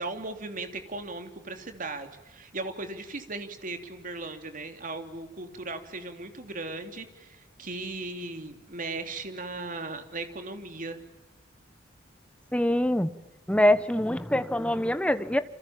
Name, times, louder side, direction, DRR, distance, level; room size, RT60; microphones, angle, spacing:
voice 1, 0.0-11.0, right 3 dB, 45° right, 6 dB, 3.3 m, -37 dB
voice 2, 12.5-13.1 13.5-15.4, left 1 dB, 5° left, 11 dB, 1.2 m, -24 dB
29.0 x 27.0 x 7.4 m, 1.0 s
head